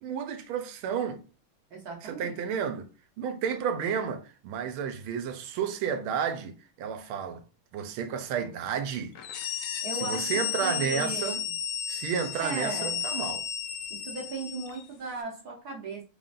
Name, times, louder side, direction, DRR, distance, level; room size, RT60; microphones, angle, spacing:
voice 1, 0.0-1.2 2.0-2.9 3.2-7.4 7.7-9.1 10.0-11.4 11.9-13.4, right 7 dB, 85° right, 1.5 m, -31 dB
voice 2, 1.7-2.4 9.8-11.6 12.4-13.0 13.9-16.0, right 4 dB, 60° right, 1.1 m, -37 dB
sound 1, 9.2-14.9, left 9 dB, 75° left, 1.0 m, -33 dB
4.1 x 3.7 x 2.4 m
omnidirectional pair, 2.3 m